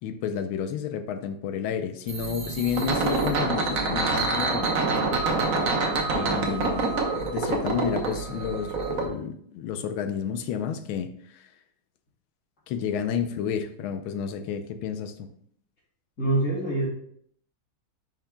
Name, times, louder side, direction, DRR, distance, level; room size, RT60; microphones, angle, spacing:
voice 1, 0.0-4.7 6.1-11.5 12.7-15.3, left 7 dB, 85° left, 9 dB, 1.5 m, -31 dB
sound 1, 2.1-9.1, right 3 dB, 50° right, 1.2 m, -26 dB
voice 2, 16.2-16.8, right 2 dB, 50° left, -10 dB, 3.1 m, -24 dB
10.0 x 5.8 x 2.3 m, 0.65 s
omnidirectional pair, 2.2 m